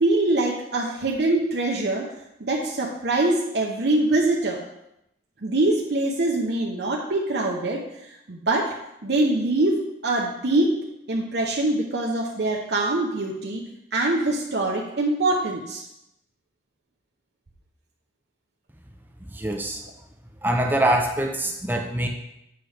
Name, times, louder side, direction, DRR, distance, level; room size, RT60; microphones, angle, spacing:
voice 1, 0.0-2.1 2.4-4.6 5.4-7.8 8.3-8.7 9.0-10.8 11.1-13.6 13.9-15.8, right 2 dB, 65° right, -2 dB, 0.8 m, -23 dB
voice 2, 19.2-19.8 20.4-22.1, right 1 dB, 10° right, 3 dB, 0.5 m, -24 dB
7.9 x 5.9 x 3.3 m, 0.84 s
head